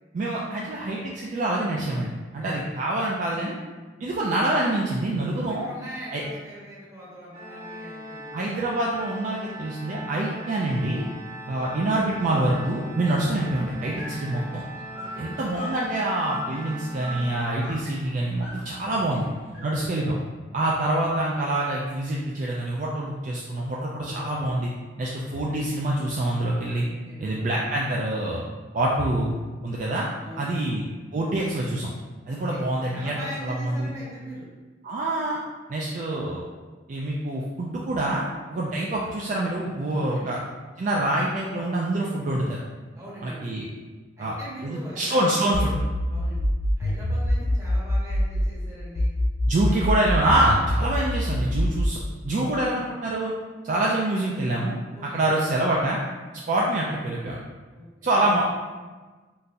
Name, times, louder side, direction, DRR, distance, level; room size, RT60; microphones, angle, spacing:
voice 1, 0.1-3.6 4.0-5.7 6.1-6.2 8.3-11.1 11.5-14.6 15.2-19.2 19.6-20.2 20.5-24.7 25.0-26.9 27.2-28.5 28.7-29.3 29.6-30.1 30.4-30.8 31.1-31.9 32.3-33.2 33.4-33.9 34.8-35.4 35.7-36.4 36.9-40.4 40.8-42.6 43.2-43.6 44.2-44.3 44.6-45.8 49.5-52.0 52.2-53.3 53.6-54.8 55.1-56.0 56.5-57.4 58.0-58.4, right 1 dB, 45° right, -3 dB, 0.3 m, -26 dB
voice 2, 5.6-8.4 11.4-11.7 15.0-15.4 18.8-19.9 24.1-24.5 26.8-27.3 30.2-30.7 32.3-32.6 32.9-34.5 40.0-40.5 42.9-43.5 44.2-45.3 46.1-46.4 46.8-49.1 54.9-55.8 57.7-58.3, right 1 dB, 15° right, -8 dB, 1.0 m, -42 dB
Organ, 7.3-18.1, right 1 dB, 75° right, 0.9 m, -40 dB
sound 1, 11.7-19.6, left 1 dB, 75° left, 0.9 m, -43 dB
sound 2, 45.5-48.5 49.0-52.0, equal, 45° left, 0.3 m, -24 dB
3.7 x 2.7 x 2.5 m, 1.3 s
head